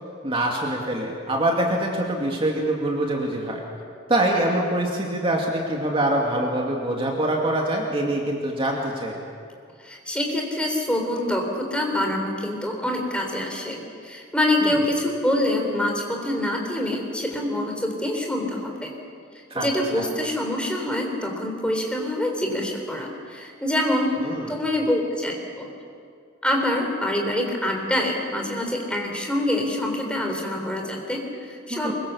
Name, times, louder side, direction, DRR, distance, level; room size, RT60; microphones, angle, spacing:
voice 1, 0.2-3.6 4.1-9.2 14.6-14.8 19.5-19.7 19.9-20.1 24.2-24.5 31.7-31.9, right 1 dB, 30° right, -1 dB, 2.3 m, -24 dB
voice 2, 9.8-18.9 19.5-24.2 24.5-25.7 26.4-31.9, left 1 dB, 5° left, 1 dB, 3.6 m, -25 dB
24.0 x 23.0 x 7.0 m, 2.3 s
head